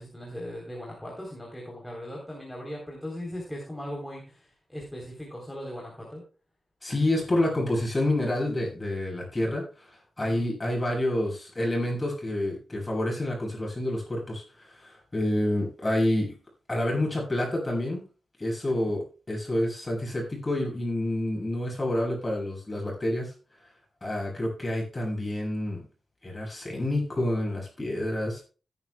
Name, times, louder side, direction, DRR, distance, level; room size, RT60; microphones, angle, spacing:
voice 1, 0.0-6.2 10.2-10.5, equal, 5° left, -2 dB, 3.8 m, -39 dB
voice 2, 6.8-9.9 10.2-16.3 16.7-18.0 18.4-23.3 24.0-25.8 26.2-28.4, left 1 dB, 25° left, -1 dB, 7.4 m, -28 dB
17.0 x 10.5 x 2.3 m, 0.34 s
wide cardioid pair, 110°, 0 cm